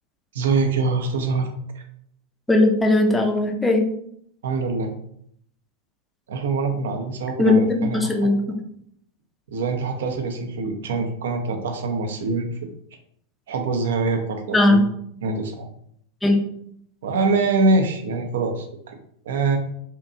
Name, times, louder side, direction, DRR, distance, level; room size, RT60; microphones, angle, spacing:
voice 1, 0.3-1.8 4.4-4.9 6.3-8.0 9.5-12.7 13.5-14.8 15.2-15.7 17.0-18.9 19.3-19.6, right 3 dB, 60° right, 5 dB, 0.4 m, -24 dB
voice 2, 2.5-3.9 7.4-8.4 14.5-14.8 16.2-16.4, left 2 dB, 5° left, 2 dB, 0.4 m, -18 dB
2.7 x 2.2 x 2.5 m, 0.70 s
figure-of-eight pair, 90°, 0 cm